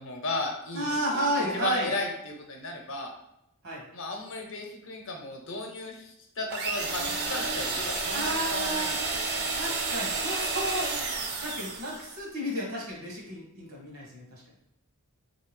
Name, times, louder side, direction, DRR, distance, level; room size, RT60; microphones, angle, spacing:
voice 1, 0.0-1.0 1.5-3.1 3.9-9.6, left 2 dB, 60° left, 2 dB, 0.7 m, -35 dB
voice 2, 0.7-1.9 3.6-3.8 8.1-9.0 9.5-11.0 11.4-14.4, right 1 dB, 70° right, -2 dB, 1.1 m, -32 dB
sound 1, 6.5-12.1, right 3 dB, 45° right, 0.5 m, -31 dB
3.2 x 2.7 x 3.2 m, 0.82 s
head